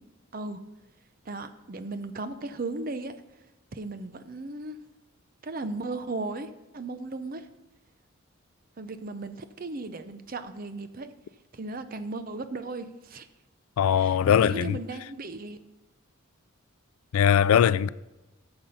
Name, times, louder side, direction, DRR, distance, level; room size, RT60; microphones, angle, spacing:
voice 1, 1.3-3.1 3.7-4.8 5.4-7.5 8.8-11.1 11.5-13.3 14.0-15.6, right 3 dB, 40° right, 0.6 m, -36 dB
voice 2, 13.8-14.8 17.1-17.9, left 8 dB, 80° left, 0.3 m, -21 dB
9.9 x 6.8 x 5.5 m
head